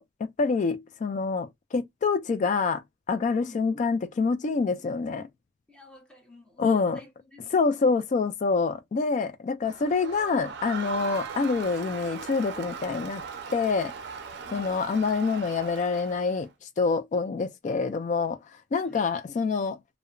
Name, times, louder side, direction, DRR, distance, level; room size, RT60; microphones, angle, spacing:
voice 1, 0.0-2.8 3.1-5.3 6.6-7.0 7.5-13.2 13.5-13.9 14.5-16.5 16.8-18.4 18.7-19.8, left 4 dB, 40° left, 0.3 m, -26 dB
voice 2, 3.3-3.7 5.7-7.5 14.4-14.7 18.8-19.1, left 2 dB, 5° left, 0.8 m, -51 dB
Crowd, 9.6-16.5, right 5 dB, 60° right, 0.5 m, -39 dB
2.8 x 2.1 x 2.5 m
head